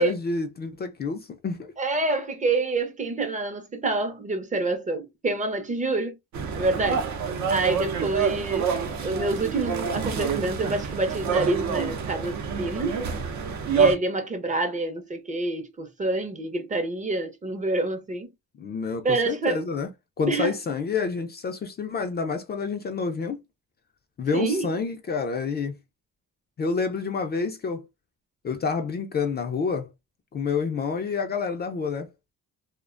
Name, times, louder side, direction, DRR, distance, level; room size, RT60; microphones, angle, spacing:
voice 1, 0.0-1.7 18.6-19.9 20.2-23.4 24.2-25.7 26.6-27.9 28.4-29.9 30.3-32.1, left 5 dB, 35° left, 0.4 m, -28 dB
voice 2, 1.8-6.1 6.5-7.0 7.5-8.7 9.0-13.0 13.7-18.3 19.0-19.6 20.3-20.5 24.3-24.7, right 2 dB, 25° right, 0.5 m, -27 dB
sound 1, 6.3-14.0, right 6 dB, 70° right, 0.6 m, -27 dB
2.4 x 2.1 x 2.4 m
cardioid pair, 90°, 30 cm